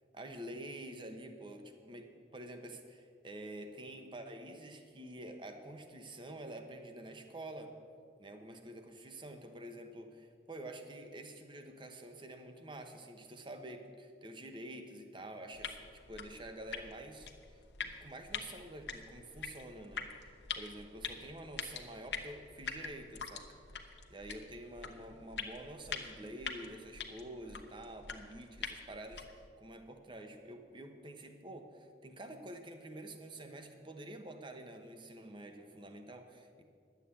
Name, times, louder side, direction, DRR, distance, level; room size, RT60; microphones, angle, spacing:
voice 1, 0.1-7.7 8.2-20.1 20.6-36.6, right 1 dB, 25° right, 6 dB, 1.0 m, -48 dB
sound 1, 15.5-29.5, left 6 dB, 80° left, 1.0 m, -45 dB
11.5 x 8.3 x 8.3 m, 2.3 s
head